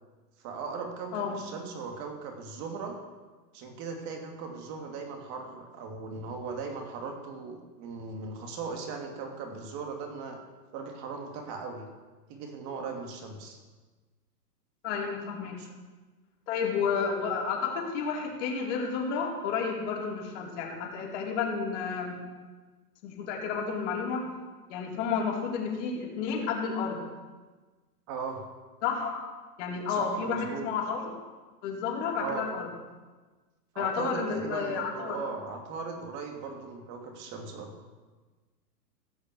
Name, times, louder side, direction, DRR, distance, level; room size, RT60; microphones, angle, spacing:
voice 1, 0.4-3.0 3.5-10.4 10.7-11.8 12.3-13.6 15.6-15.7 28.1-28.4 29.9-30.7 32.2-32.5 33.7-37.7, right 4 dB, 35° right, 3 dB, 2.9 m, -38 dB
voice 2, 14.8-15.6 16.5-22.2 23.0-24.2 24.7-27.1 28.8-29.3 29.6-31.1 31.6-32.7 33.8-35.2, left 5 dB, 45° left, -1 dB, 4.2 m, -31 dB
17.0 x 6.7 x 7.7 m, 1.3 s
hypercardioid pair, 135°, 49 cm